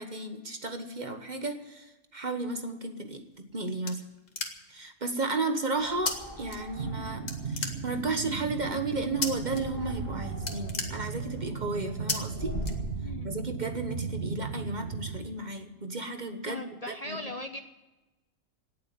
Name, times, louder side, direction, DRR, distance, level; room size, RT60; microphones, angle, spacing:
voice 1, 0.0-4.0 4.7-12.6 13.2-17.3, right 3 dB, 35° right, 7 dB, 1.3 m, -34 dB
sound 1, 3.2-4.9 6.1-6.2 6.5-7.0 7.3-8.2 9.2-9.6 9.9-10.1 10.4-11.5 12.1-12.2 12.6-13.3, left 4 dB, 80° left, 2.0 m, -34 dB
sound 2, 5.7-13.0, left 1 dB, 10° left, 6.7 m, -43 dB
sound 3, 6.8-15.2, right 5 dB, 60° right, 1.2 m, -36 dB
voice 2, 16.4-17.6, left 2 dB, 35° left, 6 dB, 0.8 m, -38 dB
18.0 x 7.7 x 9.5 m, 1.1 s
omnidirectional pair, 1.3 m